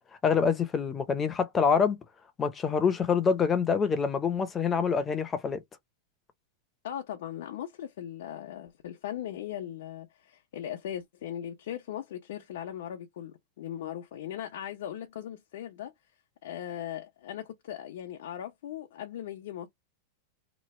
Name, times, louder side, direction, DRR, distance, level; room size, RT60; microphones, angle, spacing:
voice 1, 0.2-2.0 2.4-5.6, left 6 dB, 15° left, 0.6 m, -26 dB
voice 2, 6.8-15.9 16.4-19.7, left 10 dB, 70° left, 0.8 m, -39 dB
3.0 x 2.2 x 4.2 m
supercardioid pair, 155°, 0 cm